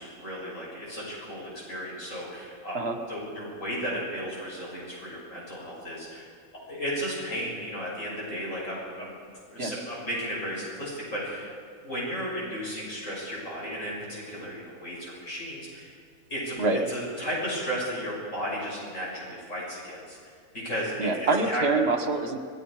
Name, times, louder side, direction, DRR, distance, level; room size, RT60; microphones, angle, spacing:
voice 1, 0.0-2.8 3.1-6.3 6.7-9.2 9.5-11.5 11.8-15.9 16.3-16.6 16.9-21.6, equal, 60° left, -5 dB, 7.0 m, -34 dB
voice 2, 21.0-22.4, right 3 dB, 45° right, 6 dB, 1.5 m, -25 dB
27.0 x 19.5 x 4.9 m, 2.1 s
omnidirectional pair, 1.5 m